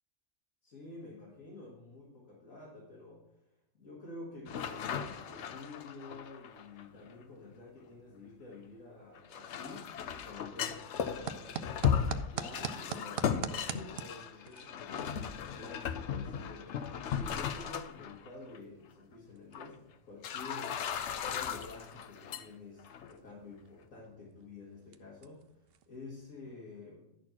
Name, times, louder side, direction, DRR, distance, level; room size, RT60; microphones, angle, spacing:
voice 1, 0.6-3.2 3.7-9.9 10.2-11.7 12.3-20.8 21.2-25.5 25.9-27.1, left 3 dB, 80° left, -6 dB, 2.4 m, -49 dB
sound 1, 4.5-7.1 9.2-18.3 18.5-18.6 19.5-19.7 20.2-22.4 22.8-23.1, left 8 dB, 65° left, 0.9 m, -36 dB
sound 2, 10.3-26.6, right 7 dB, 60° right, 0.7 m, -47 dB
11.5 x 4.4 x 5.9 m, 0.87 s
omnidirectional pair, 1.4 m